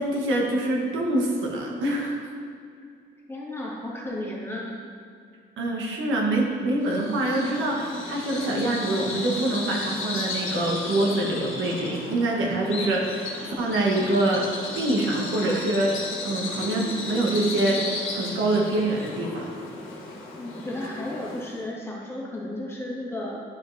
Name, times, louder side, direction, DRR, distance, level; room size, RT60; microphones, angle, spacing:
voice 1, 0.0-2.3 5.6-14.5 14.8-17.8 18.1-19.5, right 1 dB, 80° right, -1 dB, 1.3 m, -25 dB
voice 2, 3.3-4.8 20.4-23.4, left 1 dB, 10° left, -5 dB, 1.7 m, -33 dB
Bird vocalization bird call bird song, 6.8-21.6, left 3 dB, 85° left, 1.4 m, -34 dB
10.0 x 5.0 x 2.7 m, 2.3 s
cardioid pair, 90°, 20 cm